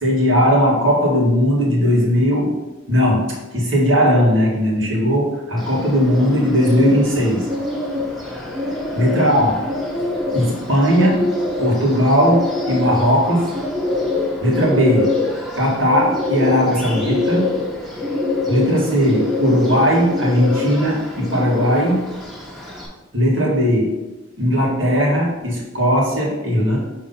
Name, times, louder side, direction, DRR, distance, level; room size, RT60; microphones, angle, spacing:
voice 1, 0.0-2.6 2.9-7.5 8.9-9.6 10.3-11.3 11.6-13.5 14.4-15.2 15.5-17.6 18.5-22.1 23.1-24.1 24.4-26.8, equal, 80° right, -4 dB, 1.9 m, -17 dB
Bird, 5.6-22.9, left 2 dB, ahead, 0.9 m, -25 dB
5.3 x 3.5 x 5.5 m, 1.1 s
head